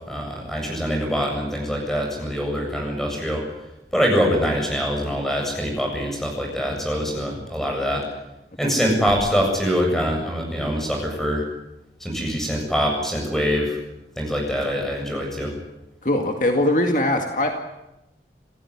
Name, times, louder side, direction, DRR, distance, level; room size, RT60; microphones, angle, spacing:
voice 1, 0.1-3.4 3.9-8.0 8.6-11.5 12.0-13.8 14.2-15.5, equal, ahead, 1 dB, 7.5 m, -24 dB
voice 2, 16.0-17.6, left 1 dB, 45° left, 3 dB, 2.2 m, -21 dB
28.0 x 15.5 x 9.9 m, 0.94 s
head